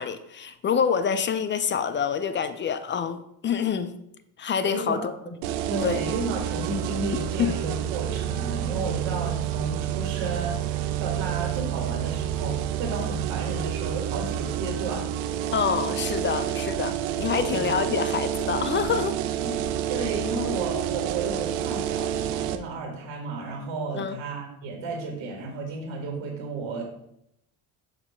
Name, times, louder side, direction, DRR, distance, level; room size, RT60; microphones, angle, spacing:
voice 1, 0.0-3.9 4.4-5.1 5.8-6.0 7.4-7.6 15.5-19.2 23.9-24.2, left 7 dB, 25° left, 0.3 m, -26 dB
voice 2, 4.7-5.1 5.7-15.0 17.4-17.7 19.4-26.8, right 3 dB, 70° right, 1.8 m, -33 dB
sound 1, 5.4-22.6, right 11 dB, 85° right, 0.7 m, -29 dB
6.8 x 2.9 x 5.5 m
supercardioid pair, 95°, 49 cm